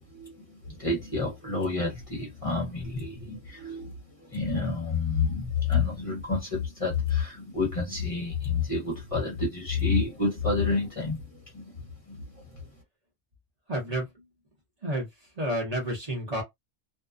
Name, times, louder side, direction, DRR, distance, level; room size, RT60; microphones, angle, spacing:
voice 1, 0.1-3.9 4.2-11.2 11.5-11.8 12.1-12.2, left 4 dB, 35° left, 0.9 m, -29 dB
voice 2, 13.7-14.1 14.8-15.1 15.4-16.4, right 1 dB, 40° right, 0.9 m, -30 dB
2.6 x 2.1 x 2.3 m
omnidirectional pair, 1.1 m